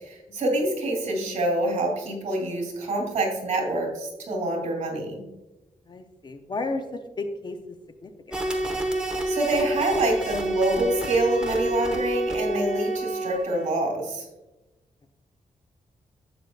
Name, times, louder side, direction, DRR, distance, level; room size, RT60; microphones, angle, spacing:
voice 1, 0.0-5.2 9.3-14.2, right 2 dB, 60° right, 0 dB, 2.8 m, -26 dB
voice 2, 5.9-7.6 8.0-8.4, left 2 dB, 35° left, 7 dB, 0.5 m, -33 dB
sound 1, 8.3-13.7, right 1 dB, 5° right, 1.1 m, -28 dB
12.0 x 8.0 x 2.3 m, 1.0 s
wide cardioid pair, 165°, 13 cm